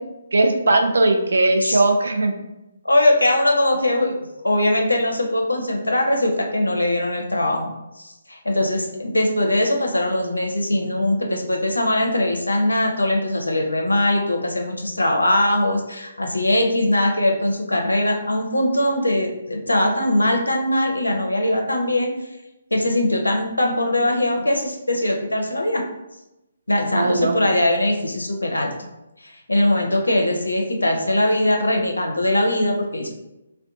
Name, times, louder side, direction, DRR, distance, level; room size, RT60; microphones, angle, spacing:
voice 1, 0.3-2.3 26.9-27.4, right 2 dB, 70° right, 4 dB, 0.4 m, -18 dB
voice 2, 2.8-4.1 4.4-7.7 8.0-22.1 22.7-25.8 26.7-28.7 29.2-33.1, left 1 dB, 85° left, 2 dB, 0.4 m, -21 dB
2.5 x 2.1 x 2.6 m, 0.94 s
figure-of-eight pair, 140°, 0 cm